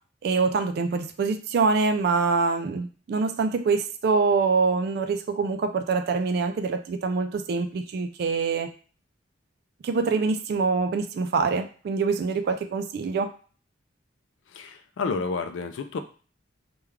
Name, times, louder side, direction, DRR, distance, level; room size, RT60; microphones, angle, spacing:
voice 1, 0.2-8.7 9.8-13.3, right 4 dB, 55° right, 0.3 m, -25 dB
voice 2, 14.5-16.0, left 4 dB, 75° left, 0.3 m, -30 dB
3.2 x 2.3 x 3.5 m
head